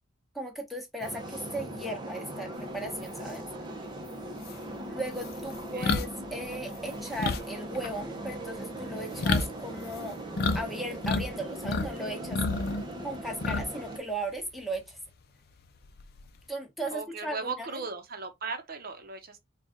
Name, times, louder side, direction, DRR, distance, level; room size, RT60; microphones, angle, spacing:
voice 1, 0.3-3.4 4.9-10.2 10.5-12.4 13.0-15.0 16.5-17.7, right 1 dB, ahead, 1.1 m, -37 dB
sound 1, 1.0-14.0, right 1 dB, 20° right, 0.8 m, -40 dB
sound 2, 3.9-4.0 4.4-10.6 10.9-11.9 12.2-13.9 14.2-14.4 15.8-16.4, left 3 dB, 50° left, 0.5 m, -30 dB
voice 2, 16.9-19.4, right 4 dB, 50° right, 0.8 m, -37 dB
4.0 x 2.4 x 3.6 m
head